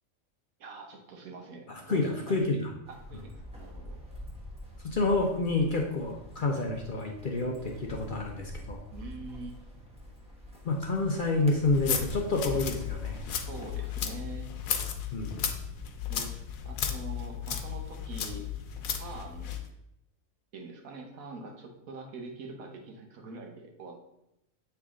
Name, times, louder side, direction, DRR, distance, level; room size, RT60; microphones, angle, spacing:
voice 1, 0.6-4.0 8.9-9.5 13.5-14.5 16.1-18.5 19.0-19.5 20.5-24.0, right 3 dB, 90° right, 2 dB, 1.4 m, -44 dB
voice 2, 1.7-2.7 4.8-8.8 10.6-13.2 15.1-15.5, left 2 dB, 50° left, 1 dB, 0.6 m, -29 dB
sound 1, 2.8-14.1, equal, 5° right, 1.0 m, -46 dB
sound 2, 11.6-19.7, left 8 dB, 85° left, 1.1 m, -34 dB
7.5 x 3.4 x 3.6 m, 0.83 s
omnidirectional pair, 1.4 m